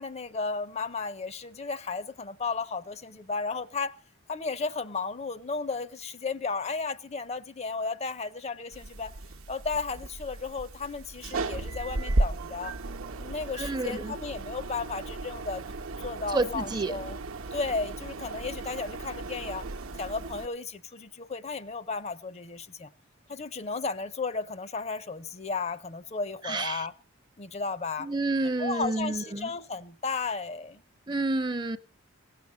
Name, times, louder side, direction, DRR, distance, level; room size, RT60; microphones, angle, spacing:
voice 1, 0.0-3.9 4.3-9.1 9.5-12.8 13.2-15.6 16.0-17.2 17.5-19.7 20.0-22.9 23.3-26.9 27.4-28.1 28.6-30.8, left 4 dB, 30° left, 0.5 m, -34 dB
sound 1, 8.7-20.5, right 2 dB, 80° right, 0.8 m, -35 dB
voice 2, 13.6-14.1 16.3-16.9 26.4-26.9 28.0-29.5 31.1-31.8, right 2 dB, 20° right, 0.5 m, -29 dB
17.0 x 7.6 x 7.3 m
head